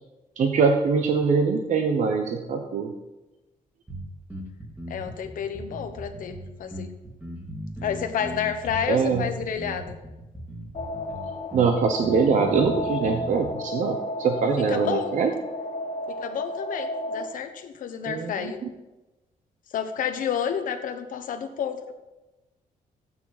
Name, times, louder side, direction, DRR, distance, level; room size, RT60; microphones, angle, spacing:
voice 1, 0.4-2.9 8.9-9.2 11.5-15.3 18.1-18.5, right 5 dB, 55° right, 4 dB, 1.0 m, -23 dB
sound 1, 3.9-13.5, equal, 10° right, 2.2 m, -38 dB
voice 2, 4.9-6.9 7.8-10.0 14.7-15.1 16.1-18.6 19.7-21.9, left 8 dB, 70° left, 7 dB, 1.2 m, -30 dB
sound 2, 10.7-17.3, left 1 dB, 50° left, 1.7 m, -33 dB
14.5 x 9.0 x 4.1 m, 1.1 s
cardioid pair, 150°, 15 cm